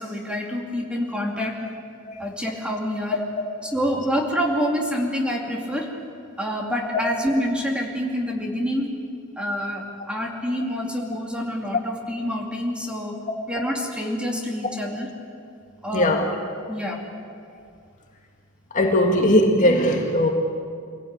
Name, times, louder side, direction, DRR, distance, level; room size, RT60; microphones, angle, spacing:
voice 1, 0.0-1.6 2.2-3.2 3.6-6.0 6.4-8.9 9.4-15.1 15.8-16.2 16.7-17.1, equal, 5° right, 0 dB, 2.6 m, -27 dB
voice 2, 15.9-16.3 18.7-20.3, left 1 dB, 35° left, 2 dB, 1.9 m, -19 dB
25.0 x 17.5 x 8.9 m, 2.3 s
head